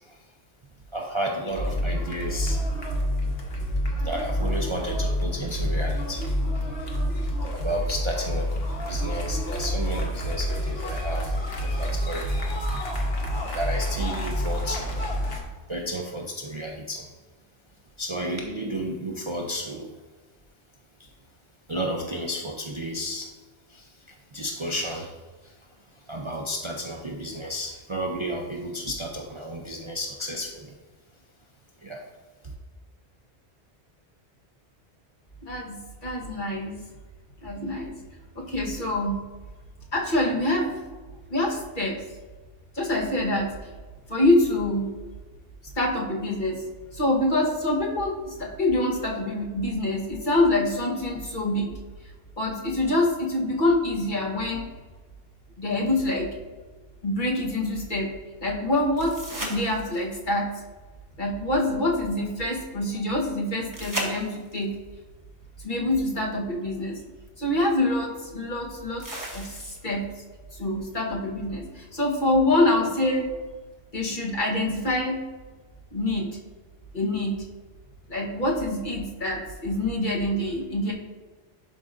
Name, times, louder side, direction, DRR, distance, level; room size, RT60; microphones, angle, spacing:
voice 1, 0.9-2.6 4.0-6.3 7.5-8.5 8.8-12.8 13.5-15.0 15.7-17.0 18.0-19.9 21.0-21.1 21.7-23.3 23.7-23.9 24.3-25.2 25.4-25.5 26.1-30.7 31.8-32.0 32.4-32.5, equal, 35° right, 0 dB, 0.5 m, -32 dB
sound 1, 1.5-15.4, equal, 60° left, 1.3 m, -28 dB
voice 2, 35.4-36.8 37.4-38.0 38.3-39.2 39.9-40.8 41.3-42.0 42.7-43.7 44.1-44.9 45.7-46.6 46.9-51.7 52.4-54.7 55.6-56.3 57.0-58.1 58.4-59.1 59.4-60.5 61.2-64.7 65.6-67.0 67.4-69.1 69.3-70.0 70.5-73.3 73.9-75.2 75.9-76.3 76.9-77.3 78.1-80.9, left 1 dB, 45° left, -2 dB, 1.4 m, -25 dB
sound 2, 59.0-60.2 63.7-64.7 66.6-66.7 69.0-70.0 73.0-73.1, equal, 20° right, 1.1 m, -35 dB
11.0 x 4.8 x 2.6 m, 1.3 s
omnidirectional pair, 1.2 m